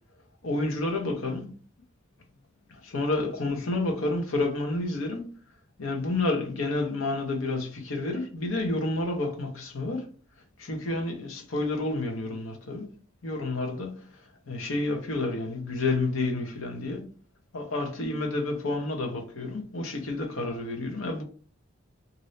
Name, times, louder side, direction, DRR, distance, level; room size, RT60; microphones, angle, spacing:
voice 1, 0.4-1.6 2.7-5.4 5.8-10.1 10.6-12.9 13.2-17.1 17.5-21.2, left 2 dB, 75° left, 0.9 m, -30 dB
3.2 x 2.6 x 2.6 m
head